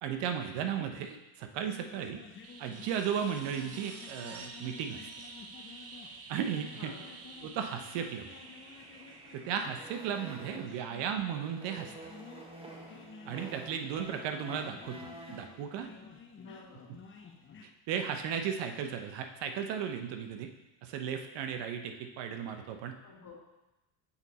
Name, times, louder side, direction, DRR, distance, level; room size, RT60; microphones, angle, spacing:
voice 1, 0.0-2.2 2.6-5.0 6.3-6.9 7.4-8.4 9.3-11.9 13.3-15.9 17.9-20.5 20.8-23.0, right 8 dB, 65° right, 6 dB, 0.9 m, -35 dB
sound 1, 1.6-17.6, left 5 dB, 25° left, 0.7 m, -52 dB
sound 2, 2.4-11.1 13.5-13.6, right 4 dB, 30° right, 0.7 m, -50 dB
sound 3, 6.6-10.9 11.3-15.6, right 2 dB, 10° right, 1.1 m, -51 dB
voice 2, 6.7-7.2 10.8-11.0 16.4-16.9 23.0-23.3, left 4 dB, 45° left, -4 dB, 2.5 m, -51 dB
7.1 x 4.0 x 4.2 m, 0.98 s
supercardioid pair, 95°, 46 cm